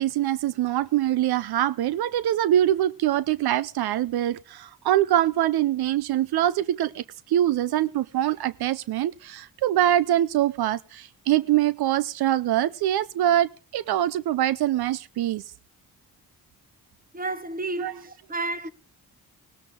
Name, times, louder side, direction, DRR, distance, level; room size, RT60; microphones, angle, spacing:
voice 1, 0.0-15.4 17.8-17.9, right 12 dB, 85° right, 0.6 m, -24 dB
voice 2, 17.1-18.7, right 2 dB, 25° right, 1.3 m, -31 dB
18.0 x 13.5 x 3.6 m
cardioid pair, 70°, 37 cm